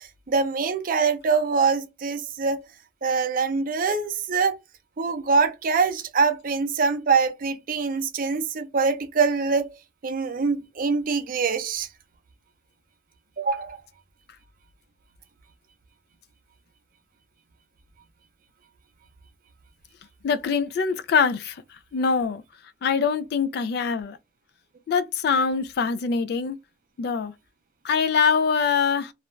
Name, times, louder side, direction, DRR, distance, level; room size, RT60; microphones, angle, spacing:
voice 1, 0.0-2.6 3.0-4.5 5.0-9.7 10.0-11.9 13.4-13.8, right 5 dB, 50° right, 0.5 m, -24 dB
voice 2, 20.2-21.6 21.9-22.4 22.8-24.2 24.9-26.6 27.0-27.3 27.8-29.1, left 5 dB, 60° left, 0.3 m, -23 dB
2.4 x 2.1 x 3.0 m
head